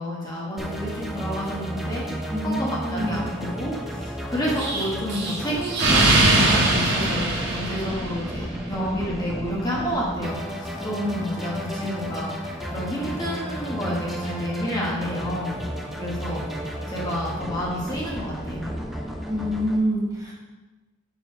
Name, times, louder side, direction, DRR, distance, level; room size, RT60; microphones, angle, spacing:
voice 1, 0.0-15.5 16.0-16.4 16.9-18.7, equal, 20° left, -5 dB, 1.4 m, -30 dB
sound 1, 0.6-19.8, equal, ahead, 0.7 m, -33 dB
voice 2, 2.3-3.3 19.3-20.3, equal, 15° right, -5 dB, 1.4 m, -26 dB
Explosion, 4.6-8.4, right 2 dB, 55° right, 1.5 m, -21 dB
6.8 x 4.6 x 4.9 m, 1.2 s
head